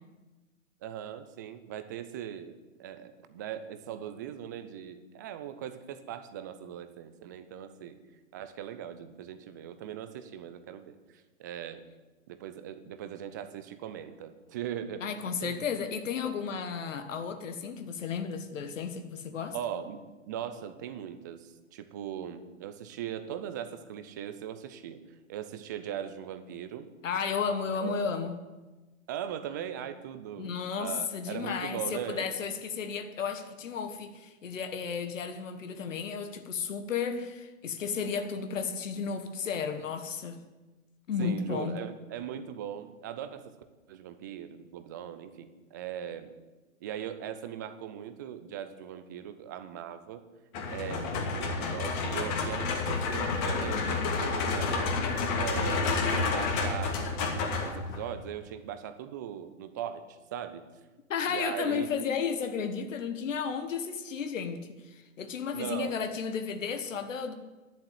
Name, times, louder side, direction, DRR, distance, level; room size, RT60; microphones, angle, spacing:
voice 1, 0.8-2.5 2.8-8.0 8.3-10.9 11.4-11.8 12.3-15.1 15.4-15.6 19.5-25.0 25.3-26.9 27.7-28.0 29.1-32.3 41.2-43.5 43.9-46.3 46.8-50.2 50.7-54.9 55.3-55.9 56.3-60.6 61.3-61.9 65.5-66.0, right 10 dB, 15° right, 11 dB, 0.4 m, -39 dB
voice 2, 15.0-19.6 27.0-28.4 30.4-40.4 41.1-41.8 61.1-67.3, left 6 dB, 65° left, 8 dB, 1.5 m, -33 dB
sound 1, 50.5-58.1, left 4 dB, 35° left, 2.5 m, -30 dB
11.0 x 7.5 x 9.0 m, 1.2 s
hypercardioid pair, 130°, 41 cm